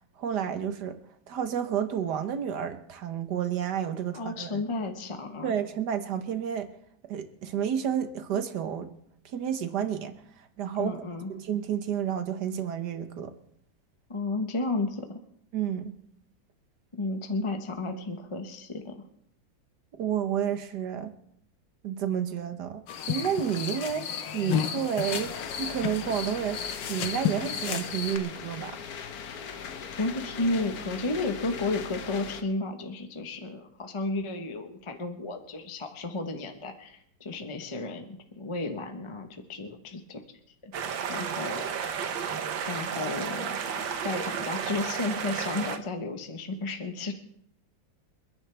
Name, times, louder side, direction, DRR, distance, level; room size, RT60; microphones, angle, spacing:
voice 1, 0.2-1.0 1.3-4.6 5.4-6.7 7.1-8.9 9.3-11.0 11.3-13.3 15.5-15.9 20.0-21.1 21.8-28.8, right 8 dB, 65° right, 1.7 m, -31 dB
voice 2, 4.1-5.5 10.8-11.3 14.1-15.2 16.9-18.9 30.0-40.2 40.6-40.7 41.1-41.7 42.7-47.1, left 2 dB, 20° left, 1.0 m, -33 dB
sound 1, 22.9-28.2, left 8 dB, 80° left, 1.7 m, -32 dB
sound 2, 25.0-32.4, left 7 dB, 55° left, 1.4 m, -40 dB
sound 3, 40.7-45.8, right 7 dB, 85° right, 1.8 m, -32 dB
29.5 x 10.5 x 3.4 m
omnidirectional pair, 2.0 m